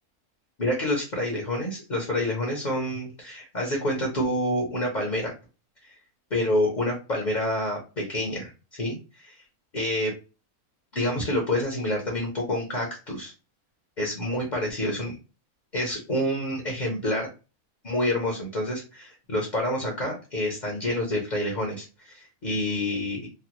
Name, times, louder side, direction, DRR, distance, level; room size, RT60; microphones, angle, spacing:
voice 1, 0.6-5.3 5.8-5.9 6.3-9.4 9.7-10.1 10.9-13.3 14.0-15.2 15.7-17.3 17.8-23.3, left 1 dB, 35° left, 0 dB, 0.8 m, -28 dB
3.3 x 2.2 x 2.9 m, 0.31 s
omnidirectional pair, 1.6 m